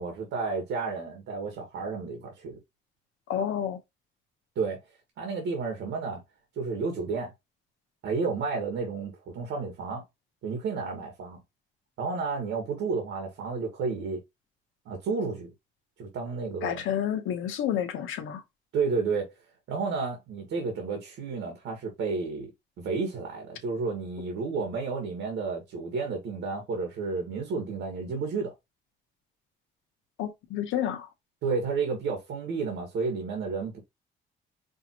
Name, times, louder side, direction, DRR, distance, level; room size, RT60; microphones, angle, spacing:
voice 1, 0.0-2.6 4.5-4.8 5.2-6.2 6.5-7.3 8.0-10.0 10.4-11.4 12.0-14.2 14.8-15.5 16.0-16.9 18.7-19.3 19.7-22.5 22.8-28.5 31.4-33.8, right 4 dB, 80° right, 1.7 m, -31 dB
voice 2, 3.3-3.8 16.6-18.4 30.2-31.1, left 10 dB, 85° left, 1.1 m, -30 dB
5.4 x 2.7 x 2.9 m
cardioid pair, 90°, 20 cm